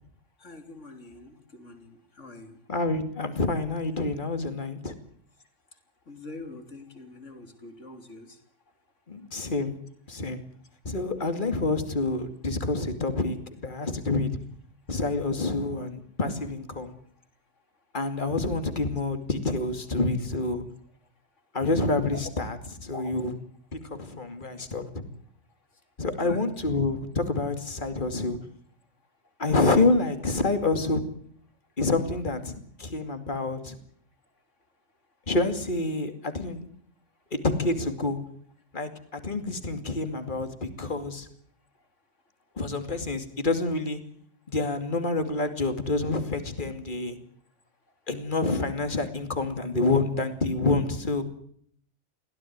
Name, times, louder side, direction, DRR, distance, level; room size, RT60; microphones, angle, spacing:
voice 1, 0.4-2.5 6.1-8.4 22.1-22.2 22.9-23.1 26.2-26.4, left 2 dB, 75° left, 6 dB, 3.6 m, -44 dB
voice 2, 2.7-4.9 9.1-9.7 10.1-10.4 10.8-14.3 14.9-16.9 17.9-20.6 21.5-23.3 23.7-24.9 26.0-28.4 29.4-31.0 31.8-33.8 35.3-36.7 37.3-38.2 38.7-41.3 42.6-44.0 44.5-47.2 48.1-51.2, left 3 dB, 40° left, 8 dB, 2.7 m, -27 dB
23.0 x 16.5 x 9.6 m, 0.64 s
omnidirectional pair, 1.3 m